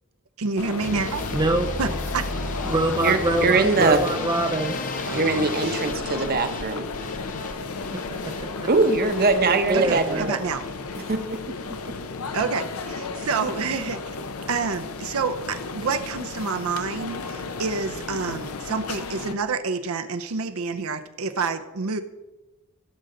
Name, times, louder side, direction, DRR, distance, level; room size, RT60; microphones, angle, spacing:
voice 1, 0.4-1.3 1.8-2.3 5.0-6.0 9.7-10.7 12.3-14.0 14.5-22.0, right 4 dB, 70° right, 7 dB, 0.6 m, -28 dB
sound 1, 0.6-19.3, left 4 dB, 75° left, 0.8 m, -33 dB
sound 2, 0.8-12.9 13.2-13.8 14.1-14.7 15.0-15.3 15.6-15.7 15.9-16.0, left 2 dB, 35° left, 0.9 m, -36 dB
voice 2, 1.3-1.7 2.6-4.8 8.4-8.5 9.7-10.5, right 2 dB, 20° right, 5 dB, 0.5 m, -24 dB
voice 3, 3.0-4.0 5.1-6.8 8.7-10.3 11.1-11.2, right 3 dB, 45° right, 8 dB, 0.9 m, -21 dB
16.0 x 6.5 x 3.9 m, 1.1 s
head